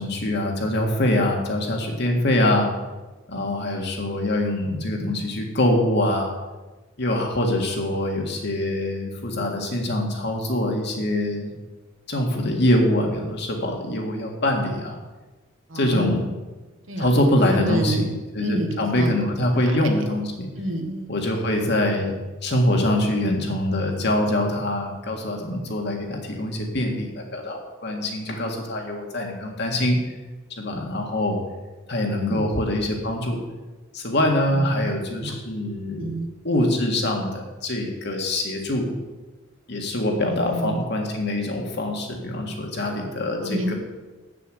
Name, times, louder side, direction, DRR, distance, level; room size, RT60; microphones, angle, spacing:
voice 1, 0.0-2.7 3.3-6.3 7.0-11.5 12.1-15.0 15.7-16.3 17.0-18.1 18.3-20.5 21.1-22.1 22.4-30.0 30.6-31.4 31.9-33.4 33.9-36.1 36.4-38.9 39.7-43.7, left 1 dB, 60° left, 1 dB, 1.8 m, -24 dB
voice 2, 15.7-16.3 16.9-17.1 17.4-18.1 18.4-19.7 20.5-21.1 32.2-32.4 34.5-34.9 35.2-35.3 36.0-36.3 40.2-40.8 43.4-43.7, right 1 dB, 80° right, 3 dB, 1.6 m, -29 dB
7.8 x 6.9 x 7.9 m, 1.2 s
head